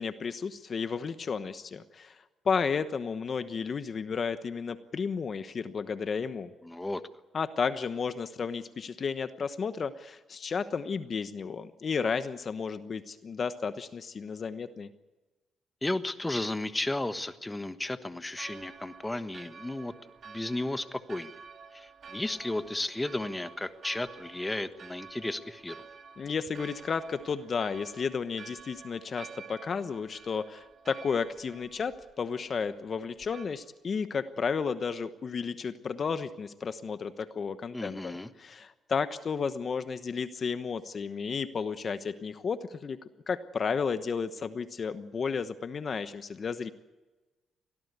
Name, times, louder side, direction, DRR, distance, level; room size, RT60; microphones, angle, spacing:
voice 1, 0.0-2.2 2.4-6.5 7.3-14.9 26.2-43.0 43.3-46.7, left 5 dB, 45° left, 11 dB, 1.1 m, -33 dB
voice 2, 6.6-7.0 15.8-21.3 21.7-25.8 37.7-38.3, left 2 dB, 15° left, 10 dB, 1.3 m, -34 dB
Church bell, 18.3-33.5, right 6 dB, 50° right, 2.6 m, -50 dB
24.0 x 17.5 x 8.2 m, 1.2 s
cardioid pair, 90°, 0 cm